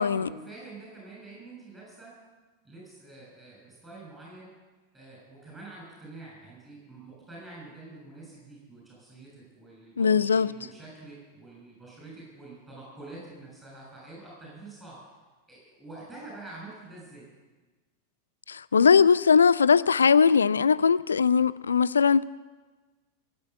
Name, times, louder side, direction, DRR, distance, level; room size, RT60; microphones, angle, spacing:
voice 1, 0.0-2.1 2.6-4.5 4.9-15.0 15.5-17.3, right 2 dB, 15° right, 6.9 m, -46 dB
voice 2, 10.0-10.5 18.5-22.2, left 6 dB, 70° left, 0.4 m, -20 dB
16.0 x 8.1 x 9.6 m
figure-of-eight pair, 90°, 0 cm